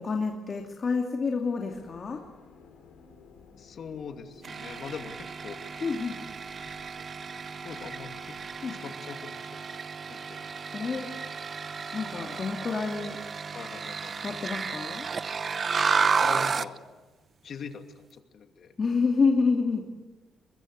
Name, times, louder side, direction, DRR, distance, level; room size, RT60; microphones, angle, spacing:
voice 1, 0.0-2.2 5.8-6.1 8.6-8.8 10.7-11.1 11.9-13.2 14.2-15.1 18.8-19.8, left 4 dB, 40° left, 2 dB, 2.5 m, -28 dB
sound 1, 1.7-8.6, left 5 dB, 80° left, 3.8 m, -55 dB
voice 2, 3.6-5.6 7.6-8.4 8.7-9.8 10.1-10.5 10.8-11.0 13.5-14.2 16.2-16.8 17.4-18.7, left 6 dB, 60° left, 5 dB, 2.6 m, -42 dB
sound 2, 4.4-16.8, right 5 dB, 40° right, 0.8 m, -32 dB
23.0 x 21.5 x 8.1 m, 1.3 s
cardioid pair, 90°, 0 cm